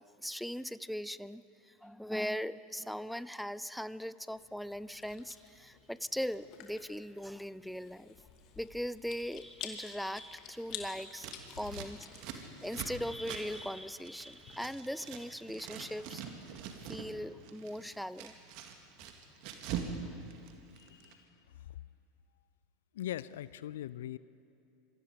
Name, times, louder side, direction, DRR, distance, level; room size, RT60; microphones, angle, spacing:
voice 1, 0.0-8.1 8.6-11.3 11.6-16.2 16.8-18.3, equal, ahead, 17 dB, 0.5 m, -40 dB
Chewing mastication, 4.3-14.5, left 8 dB, 45° left, 2.4 m, -51 dB
Scissors, 11.1-15.2 15.5-17.1 17.4-20.0 20.2-21.1, right 8 dB, 50° right, 2.2 m, -43 dB
voice 2, 20.8-21.3 21.7-21.8 22.9-24.2, left 12 dB, 70° left, 18 dB, 0.4 m, -41 dB
26.5 x 23.0 x 5.2 m, 2.8 s
figure-of-eight pair, 80°, 0 cm